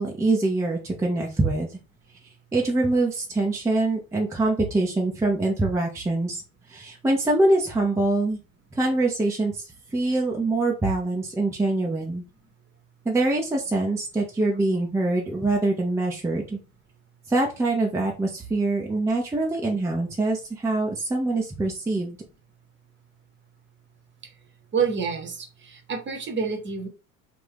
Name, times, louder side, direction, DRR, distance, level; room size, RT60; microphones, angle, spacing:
voice 1, 0.0-1.8 2.5-6.4 6.7-8.4 8.7-12.2 13.0-16.6 17.3-22.2, right 2 dB, 5° right, -1 dB, 0.6 m, -24 dB
voice 2, 24.7-26.9, right 6 dB, 25° right, 4 dB, 1.0 m, -28 dB
3.6 x 2.5 x 3.4 m, 0.32 s
figure-of-eight pair, 65°, 44 cm